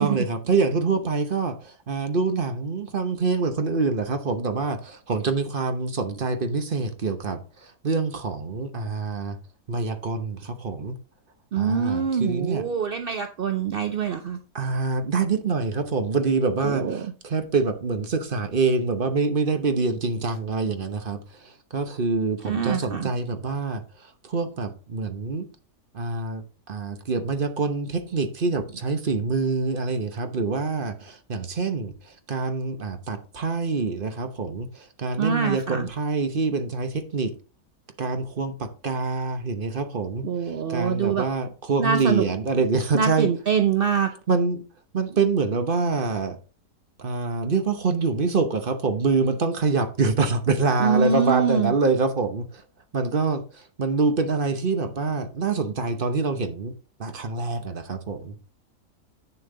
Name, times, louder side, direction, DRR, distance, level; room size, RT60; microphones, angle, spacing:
voice 1, 0.0-9.4 9.7-11.0 11.6-12.6 14.5-25.5 25.9-37.3 38.0-43.3 44.3-44.6 44.9-46.4 47.0-52.6 52.9-56.7 57.0-58.4, right 4 dB, 40° right, 0.9 m, -26 dB
voice 2, 11.5-14.4 16.6-17.0 22.4-23.1 35.2-35.9 40.2-41.2 41.8-42.2 42.9-44.1 50.8-51.7, right 6 dB, 60° right, 0.5 m, -24 dB
8.9 x 7.1 x 3.8 m
omnidirectional pair, 1.7 m